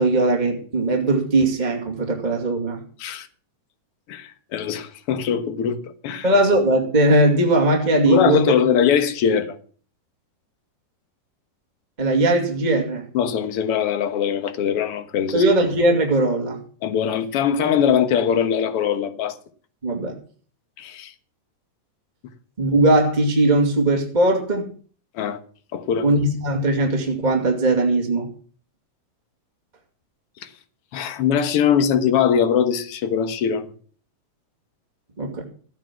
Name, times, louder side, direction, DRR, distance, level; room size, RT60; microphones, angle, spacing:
voice 1, 0.0-2.8 6.2-8.4 12.0-13.0 15.3-16.6 19.8-20.2 22.6-24.7 26.0-28.3 35.2-35.4, right 2 dB, 15° right, 2.0 m, -19 dB
voice 2, 4.1-6.3 8.1-9.6 13.1-15.4 16.8-19.4 20.8-21.1 25.1-25.4 25.7-26.1 30.4-30.5 30.9-33.7, left 8 dB, 55° left, 1.8 m, -21 dB
14.5 x 9.2 x 6.1 m
omnidirectional pair, 3.9 m